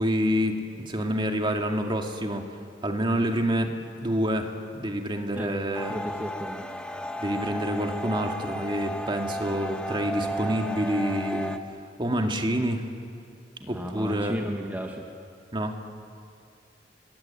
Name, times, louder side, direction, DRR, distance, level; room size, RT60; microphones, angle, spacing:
voice 1, 0.0-2.4 2.8-3.7 4.0-6.0 7.2-11.6 12.0-12.8 13.7-14.4 15.5-15.8, equal, 30° right, 4 dB, 2.1 m, -27 dB
sound 1, 5.7-11.6, equal, 5° left, 1.1 m, -34 dB
voice 2, 5.9-6.6 13.6-15.0, equal, 10° right, 1 dB, 1.5 m, -34 dB
29.0 x 20.5 x 8.9 m, 2.5 s
head